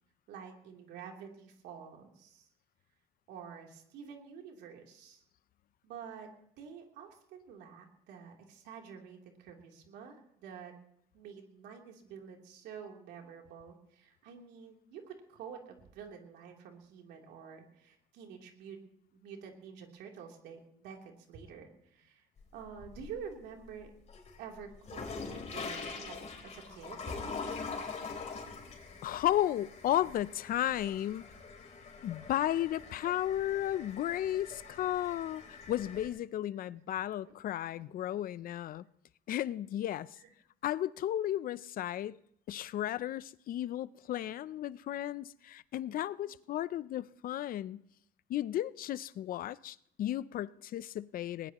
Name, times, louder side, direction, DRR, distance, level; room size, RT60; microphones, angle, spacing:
voice 1, 0.3-2.5 3.3-5.2 5.8-10.8 11.1-18.8 19.1-22.3 22.5-23.9 24.4-27.4 36.7-36.8 37.3-37.4 37.7-37.9 40.1-40.3 46.2-46.3, right 7 dB, 85° right, 3.3 m, -49 dB
sound 1, 22.4-23.3 23.8-36.1, left 4 dB, 40° left, 3.9 m, -44 dB
voice 2, 29.0-31.3 32.0-38.8 39.3-40.2 40.6-42.2 42.5-47.8 48.3-51.5, left 12 dB, 60° left, 0.6 m, -34 dB
21.0 x 20.0 x 3.0 m
cardioid pair, 110°, 17 cm